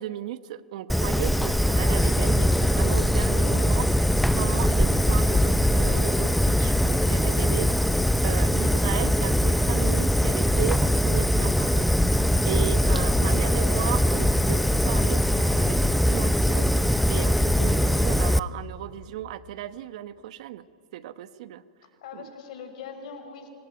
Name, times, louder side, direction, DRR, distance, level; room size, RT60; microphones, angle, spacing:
voice 1, 0.0-3.9 4.3-7.9 8.2-20.7 20.9-21.6 22.1-22.3, right 12 dB, 65° right, 15 dB, 1.0 m, -35 dB
Fire, 0.9-18.4, equal, ahead, 0.6 m, -22 dB
voice 2, 3.2-3.7 13.2-14.0 22.0-23.5, left 6 dB, 65° left, 5 dB, 5.4 m, -41 dB
25.5 x 22.0 x 9.1 m, 2.4 s
hypercardioid pair, 115°, 4 cm